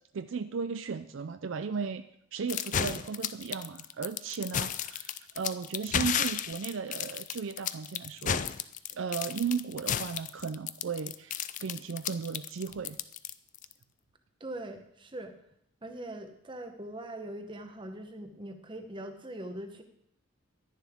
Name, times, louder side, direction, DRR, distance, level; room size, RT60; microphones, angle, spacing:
voice 1, 0.1-2.0 2.3-8.5 8.9-13.0, right 5 dB, 65° right, 10 dB, 0.4 m, -35 dB
sound 1, 2.5-13.7, left 9 dB, 35° left, 0.4 m, -33 dB
voice 2, 14.4-15.3 15.8-19.8, right 1 dB, 25° right, 6 dB, 0.9 m, -41 dB
11.0 x 10.5 x 3.6 m, 0.72 s
head